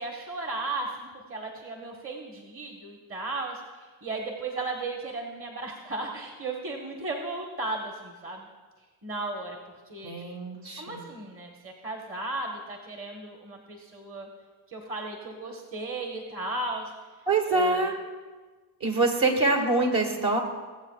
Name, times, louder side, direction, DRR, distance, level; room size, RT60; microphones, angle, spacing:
voice 1, 0.0-8.5 9.0-9.6 9.9-10.1 10.8-14.3 14.7-16.9 17.5-17.8, right 2 dB, 25° right, 1 dB, 1.4 m, -35 dB
voice 2, 10.0-11.0 17.3-18.0 18.8-20.4, right 2 dB, 50° right, 2 dB, 2.0 m, -25 dB
21.0 x 7.3 x 2.4 m, 1.3 s
supercardioid pair, 70°, 48 cm